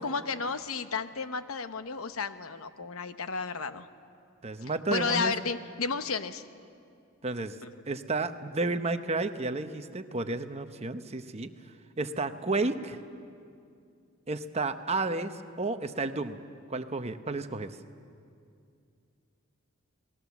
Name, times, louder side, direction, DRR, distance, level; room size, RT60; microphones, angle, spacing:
voice 1, 0.0-3.9 4.9-6.4 7.6-7.8, left 4 dB, 75° left, 11 dB, 0.9 m, -32 dB
voice 2, 4.4-5.3 7.2-7.6 7.9-11.5 12.0-13.0 14.3-16.4 16.7-17.8, right 3 dB, 30° right, 9 dB, 0.9 m, -32 dB
29.5 x 19.5 x 7.2 m, 2.4 s
head